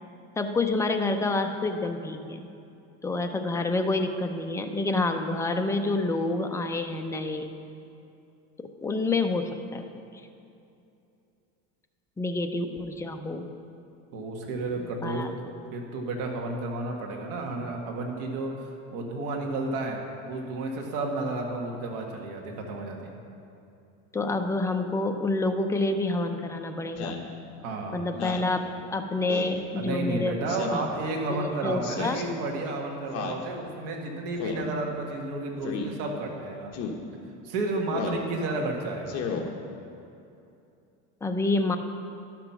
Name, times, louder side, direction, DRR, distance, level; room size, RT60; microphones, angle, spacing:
voice 1, 0.4-2.5 3.0-7.5 8.8-9.8 12.2-13.5 15.0-15.3 24.1-27.2 27.9-30.6 31.3-32.2 41.2-41.8, left 2 dB, 10° left, 5 dB, 0.4 m, -28 dB
voice 2, 14.1-15.3 15.7-18.7 18.9-23.2 27.6-28.0 29.7-36.7 37.4-39.2, right 2 dB, 70° right, 1 dB, 1.7 m, -32 dB
Speech synthesizer, 27.0-27.3 28.1-28.5 29.3-29.6 30.5-30.9 31.8-32.2 33.1-33.4 34.4-34.7 35.6-35.9 36.7-37.0 37.9-38.2 39.0-39.4, left 6 dB, 50° left, 1.1 m, -33 dB
11.5 x 6.0 x 5.8 m, 2.6 s
cardioid pair, 140°, 33 cm